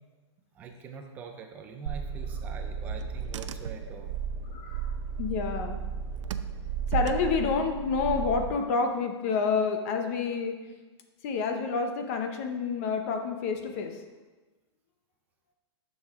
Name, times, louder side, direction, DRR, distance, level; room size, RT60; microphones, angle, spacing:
voice 1, 0.5-4.1, right 5 dB, 10° right, 4 dB, 0.4 m, -44 dB
Car / Engine, 1.9-8.5, right 7 dB, 85° right, 0.5 m, -34 dB
voice 2, 4.5-4.9 5.2-5.8 6.9-10.6 11.2-14.0, left 5 dB, 30° left, 5 dB, 0.7 m, -28 dB
10.5 x 6.5 x 3.6 m, 1.2 s
hypercardioid pair, 175°, 15 cm